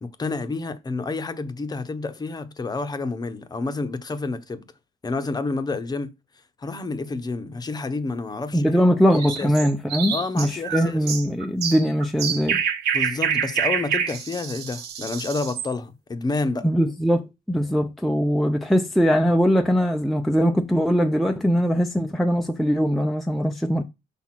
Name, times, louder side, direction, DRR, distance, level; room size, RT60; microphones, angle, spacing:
voice 1, 0.0-4.7 5.0-6.1 6.6-8.8 9.4-9.5 10.1-11.1 12.9-16.7, left 3 dB, 25° left, 0.8 m, -29 dB
voice 2, 8.5-12.6 16.6-23.8, equal, ahead, 0.5 m, -21 dB
sound 1, 9.1-15.7, right 7 dB, 80° right, 1.3 m, -27 dB
6.1 x 3.5 x 5.8 m
cardioid pair, 110°, 17 cm